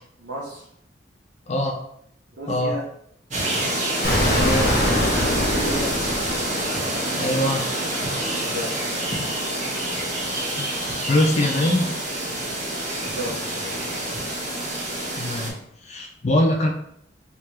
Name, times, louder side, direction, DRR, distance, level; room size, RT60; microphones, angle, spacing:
voice 1, 0.2-0.7 2.4-2.9 5.2-6.0 8.2-8.8 13.0-13.9, equal, 90° right, -5 dB, 0.7 m, -33 dB
sound 1, 3.3-15.5, right 1 dB, 40° right, 1.1 m, -27 dB
Explosion, 4.0-6.9, left 1 dB, 55° left, 1.1 m, -23 dB
voice 2, 4.3-4.7 7.2-7.7 10.6-10.7 11.1-12.0 15.2-15.6 15.8-16.7, left 1 dB, 40° left, 2 dB, 0.4 m, -22 dB
3.3 x 2.9 x 3.1 m, 0.71 s
head